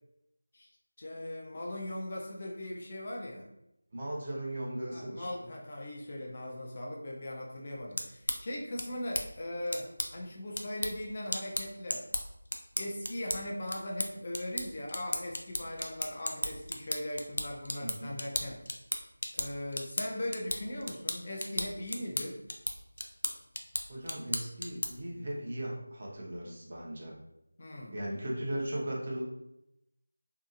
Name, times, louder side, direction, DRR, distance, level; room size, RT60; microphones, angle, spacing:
voice 1, 1.0-3.5 4.9-12.0 12.8-18.6 19.3-22.4 27.6-27.9, left 1 dB, 35° left, -1 dB, 0.5 m, -39 dB
voice 2, 3.9-5.3 17.8-18.2 23.9-27.1 27.9-29.2, right 1 dB, 40° right, -3 dB, 0.7 m, -37 dB
sound 1, 7.7-25.1, left 1 dB, 90° left, 0.4 m, -37 dB
2.7 x 2.3 x 2.5 m, 0.85 s
figure-of-eight pair, 170°, 0 cm